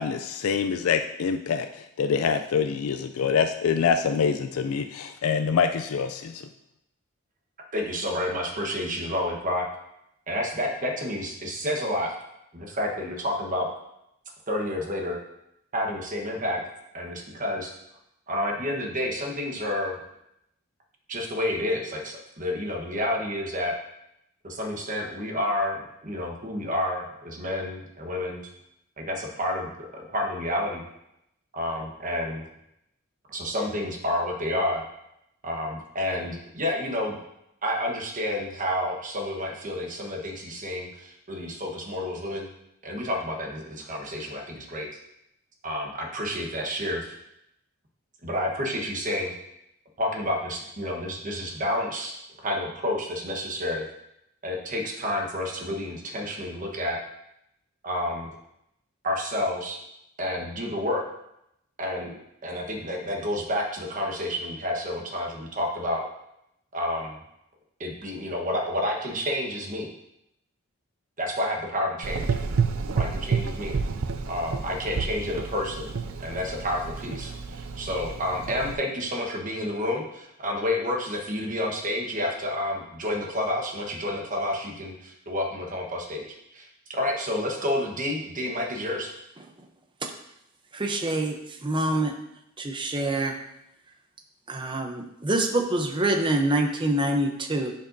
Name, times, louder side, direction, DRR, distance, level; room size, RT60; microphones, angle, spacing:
voice 1, 0.0-1.7 2.0-6.4, left 6 dB, 85° left, 8 dB, 0.4 m, -25 dB
voice 2, 7.7-9.6 10.3-12.1 12.5-13.7 14.5-15.2 15.7-16.6 16.9-17.7 18.3-20.0 21.1-23.7 24.4-28.4 29.0-30.8 31.5-32.5 33.3-34.8 35.4-37.2 37.6-42.5 42.8-44.9 45.6-47.2 48.2-49.3 50.0-53.9 54.4-57.0 57.8-58.3 59.0-59.8 60.2-61.1 61.8-62.1 62.4-66.0 66.7-67.2 67.8-69.9 71.2-72.4 72.9-73.8 74.3-75.9 76.2-86.3 86.5-89.1, left 1 dB, 40° right, 1 dB, 1.2 m, -30 dB
Gurgling / Engine, 72.0-78.8, right 5 dB, 70° right, 0.4 m, -30 dB
voice 3, 90.7-92.1 92.6-93.3 94.5-97.7, right 1 dB, 25° right, 5 dB, 0.7 m, -26 dB
10.0 x 5.4 x 2.7 m, 0.82 s
head